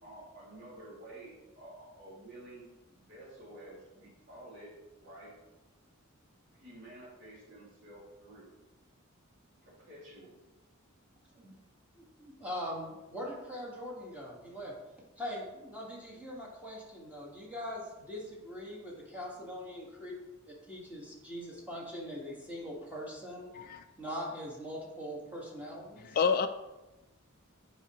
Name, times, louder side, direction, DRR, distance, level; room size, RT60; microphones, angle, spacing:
voice 1, 0.0-4.7 5.0-5.3 6.5-8.5 9.6-10.4, right 1 dB, 55° right, -11 dB, 2.5 m, -51 dB
voice 2, 11.9-14.7 15.2-20.1 20.7-23.5 24.0-26.2, equal, 5° right, -4 dB, 1.6 m, -42 dB
voice 3, 26.0-26.5, left 5 dB, 45° left, 7 dB, 0.3 m, -28 dB
9.4 x 4.7 x 3.0 m, 1.0 s
head